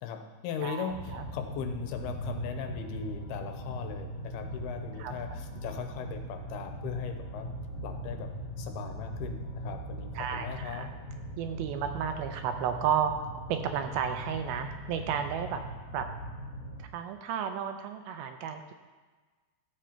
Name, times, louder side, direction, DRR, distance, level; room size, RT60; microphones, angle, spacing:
voice 1, 0.0-7.5 7.8-8.3 8.6-10.9, left 7 dB, 85° left, 5 dB, 2.6 m, -38 dB
voice 2, 0.6-1.2 5.0-5.1 10.2-10.9 11.4-15.6 15.9-16.1 16.8-18.7, right 8 dB, 80° right, 7 dB, 2.3 m, -32 dB
sound 1, 0.9-16.9, right 1 dB, 55° left, 2.7 m, -40 dB
13.5 x 7.5 x 4.4 m, 1.4 s
omnidirectional pair, 4.6 m